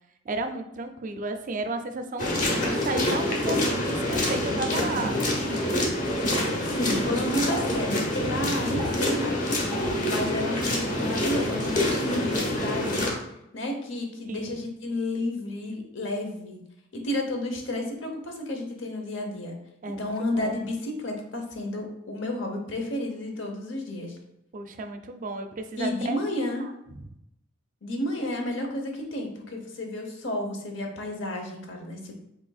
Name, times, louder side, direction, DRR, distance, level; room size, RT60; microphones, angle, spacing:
voice 1, 0.3-5.9 8.2-8.9 9.8-9.9 14.3-14.6 19.8-20.6 24.5-26.2 26.6-26.7 27.0-27.1, right 2 dB, 40° right, 7 dB, 0.4 m, -34 dB
sound 1, 2.2-13.1, left 1 dB, 40° left, 1.0 m, -26 dB
voice 2, 6.7-9.6 10.1-13.0 13.5-16.6 16.9-19.5 20.0-24.2 25.8-26.7 27.8-32.1, left 1 dB, 70° left, 2 dB, 0.9 m, -31 dB
5.2 x 3.8 x 2.4 m, 0.83 s
head